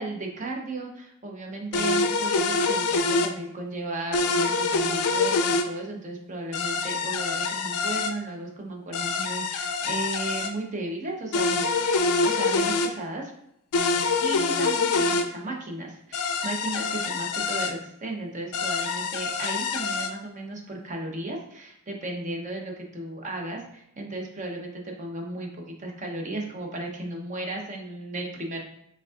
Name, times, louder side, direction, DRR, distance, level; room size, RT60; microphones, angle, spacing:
voice 1, 0.0-11.6 12.2-13.3 14.2-28.6, right 2 dB, 35° right, 1 dB, 0.7 m, -35 dB
sound 1, 1.7-3.3 4.1-5.7 6.5-8.1 8.9-10.5 11.3-12.9 13.7-15.3 16.1-17.7 18.5-20.1, left 4 dB, 85° left, 0.4 m, -25 dB
5.2 x 3.5 x 2.4 m, 0.75 s
head